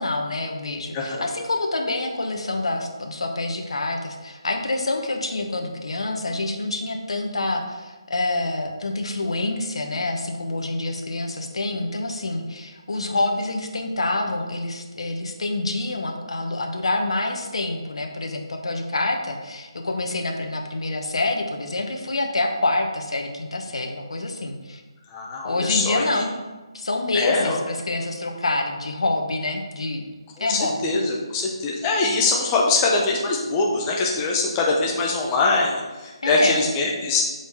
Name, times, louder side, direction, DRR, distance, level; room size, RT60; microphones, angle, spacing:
voice 1, 0.0-24.8 25.4-26.3 26.7-30.0 30.4-30.8 36.2-36.6, left 2 dB, 75° left, 3 dB, 1.1 m, -27 dB
voice 2, 0.9-1.3 25.1-26.0 27.1-27.5 30.4-37.2, left 3 dB, 15° left, -2 dB, 0.8 m, -23 dB
5.1 x 4.4 x 5.3 m, 1.2 s
hypercardioid pair, 160°, 3 cm